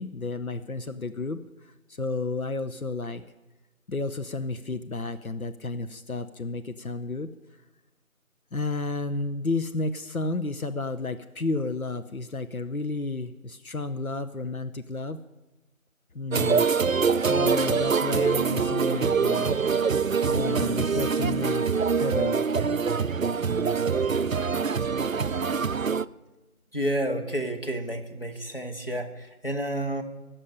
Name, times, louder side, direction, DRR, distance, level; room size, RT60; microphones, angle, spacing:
voice 1, 0.0-3.2 3.9-7.3 8.5-15.2 16.1-16.7 17.1-19.7 20.0-22.5, left 3 dB, 75° left, 10 dB, 0.9 m, -32 dB
sound 1, 16.3-26.1, right 5 dB, 65° right, 0.5 m, -24 dB
voice 2, 26.7-30.0, right 1 dB, 40° left, 4 dB, 1.6 m, -30 dB
16.5 x 7.4 x 9.9 m, 1.1 s
figure-of-eight pair, 180°, 43 cm